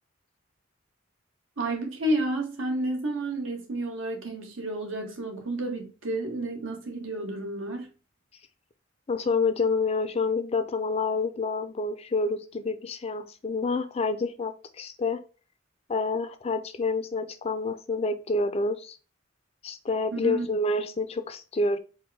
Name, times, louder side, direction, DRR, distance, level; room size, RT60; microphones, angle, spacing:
voice 1, 1.6-7.9 20.1-20.5, right 1 dB, 85° right, 1.2 m, -31 dB
voice 2, 9.1-15.2 15.9-19.0 19.6-21.8, left 3 dB, 30° left, 0.4 m, -28 dB
4.5 x 2.1 x 4.0 m
head